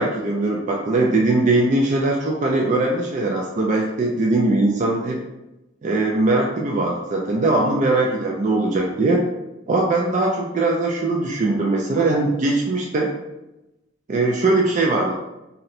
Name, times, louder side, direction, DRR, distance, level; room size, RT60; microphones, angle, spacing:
voice 1, 0.0-5.2 5.8-9.2 9.7-13.1 14.1-15.1, right 2 dB, 40° right, -1 dB, 0.3 m, -20 dB
2.7 x 2.1 x 4.0 m, 0.97 s
head